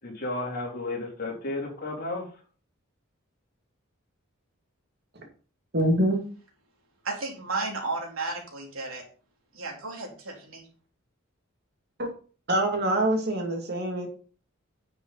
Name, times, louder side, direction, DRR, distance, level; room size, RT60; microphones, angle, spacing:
voice 1, 0.0-2.2, left 2 dB, 50° left, -1 dB, 3.5 m, -33 dB
voice 2, 5.7-6.2 12.0-12.1 12.5-14.1, right 1 dB, 50° right, 2 dB, 2.6 m, -24 dB
voice 3, 7.0-9.0 9.5-10.7, right 3 dB, 85° right, 0 dB, 3.7 m, -33 dB
9.9 x 7.2 x 4.1 m, 0.38 s
head